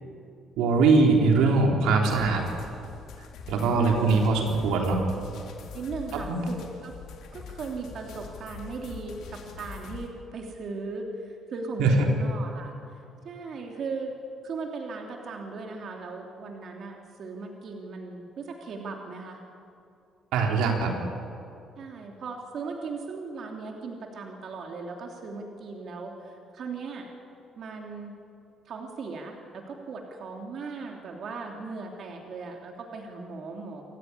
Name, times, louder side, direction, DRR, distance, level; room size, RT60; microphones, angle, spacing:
voice 1, 0.6-2.4 3.5-5.1 6.1-6.4 11.8-12.1 20.3-20.9, right 3 dB, 90° right, 1 dB, 3.9 m, -22 dB
sound 1, 2.1-10.1, left 6 dB, 75° left, 3.3 m, -43 dB
voice 2, 3.6-4.2 5.7-6.9 7.3-12.7 13.2-14.1 14.4-19.4 21.8-27.1 27.6-28.1 28.6-33.9, right 4 dB, 55° right, 1 dB, 3.0 m, -38 dB
27.5 x 14.5 x 9.9 m, 2.6 s
cardioid pair, 105°, 0 cm